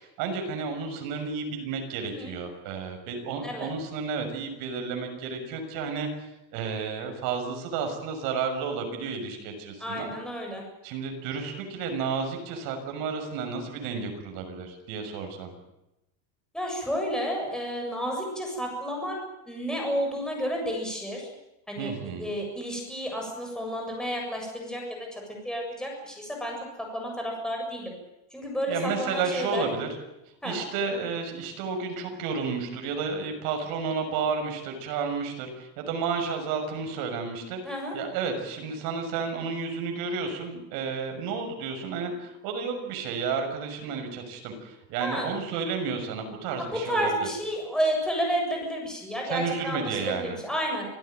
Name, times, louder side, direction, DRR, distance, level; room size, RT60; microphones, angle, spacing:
voice 1, 0.0-10.1 10.8-15.5 21.8-22.3 28.7-29.9 30.4-47.3 49.3-50.4, right 5 dB, 55° right, 5 dB, 6.4 m, -32 dB
voice 2, 2.0-2.3 3.4-3.7 9.8-10.6 16.5-19.2 19.5-21.3 21.7-21.9 22.2-27.9 28.3-29.7 30.4-30.6 37.6-37.9 45.0-45.3 46.6-50.9, equal, ahead, 0 dB, 7.5 m, -31 dB
26.5 x 16.5 x 9.3 m, 0.91 s
cardioid pair, 160°, 41 cm